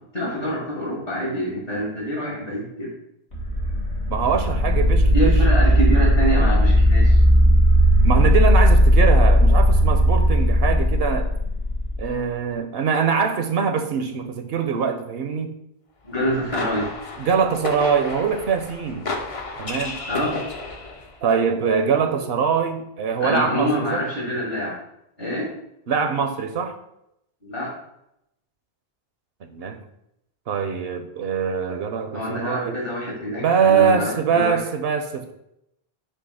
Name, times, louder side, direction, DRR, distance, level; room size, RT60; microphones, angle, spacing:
voice 1, 0.1-2.9 5.1-7.2 16.0-16.9 20.1-20.4 23.2-24.7 25.2-25.5 27.4-27.7 32.1-34.6, equal, 60° left, -5 dB, 2.2 m, -26 dB
sound 1, 3.3-12.1, equal, 85° left, 2.0 m, -16 dB
voice 2, 4.1-5.4 8.0-11.3 12.0-15.5 17.2-19.1 19.6-20.0 21.2-24.0 25.9-26.7 29.4-29.8 30.5-32.8 33.4-35.3, right 6 dB, 70° right, 7 dB, 0.9 m, -23 dB
sound 2, 16.1-21.2, left 3 dB, 40° left, 0.7 m, -33 dB
6.8 x 2.8 x 5.5 m, 0.81 s
omnidirectional pair, 1.1 m